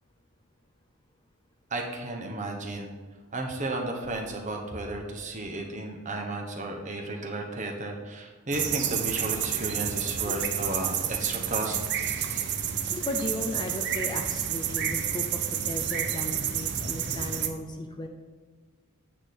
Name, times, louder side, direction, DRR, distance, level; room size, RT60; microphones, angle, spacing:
voice 1, 1.7-2.9 3.3-11.8, right 2 dB, 35° right, 1 dB, 1.2 m, -33 dB
sound 1, 8.5-17.5, right 8 dB, 50° right, 0.7 m, -30 dB
voice 2, 12.9-15.2 15.7-18.1, left 1 dB, 20° left, 4 dB, 0.5 m, -35 dB
8.9 x 4.0 x 6.6 m, 1.4 s
head